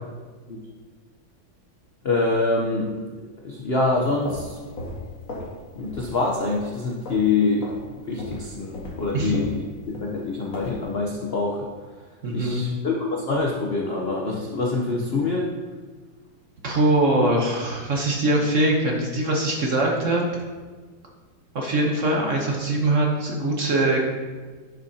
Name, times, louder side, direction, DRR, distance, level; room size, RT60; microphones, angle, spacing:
voice 1, 2.0-2.9 3.4-4.6 5.8-11.7 12.3-15.5, left 3 dB, 70° left, -1 dB, 0.5 m, -25 dB
sound 1, 4.0-5.6 5.8-6.1 6.4-7.3 7.6-7.8 8.2-10.9, left 1 dB, 45° left, 1.8 m, -36 dB
voice 2, 12.2-12.6 16.6-20.2 21.5-24.0, right 2 dB, 50° right, 0 dB, 1.1 m, -22 dB
10.5 x 6.6 x 2.8 m, 1.4 s
omnidirectional pair, 2.2 m